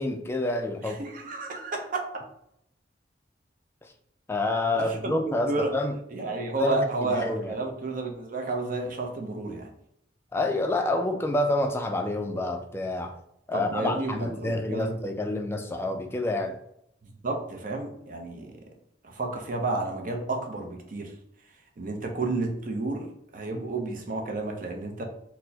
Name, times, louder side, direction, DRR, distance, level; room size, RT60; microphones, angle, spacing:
voice 1, 0.0-1.0 4.3-5.9 6.5-7.6 10.3-13.1 13.5-16.6, left 2 dB, 15° left, 4 dB, 0.3 m, -28 dB
voice 2, 0.8-2.1 4.8-5.7 6.1-9.7 13.5-15.0 17.0-18.5 19.0-21.1 21.8-23.1 23.3-25.0, right 2 dB, 45° right, 2 dB, 0.6 m, -31 dB
4.3 x 2.1 x 2.7 m, 0.75 s
head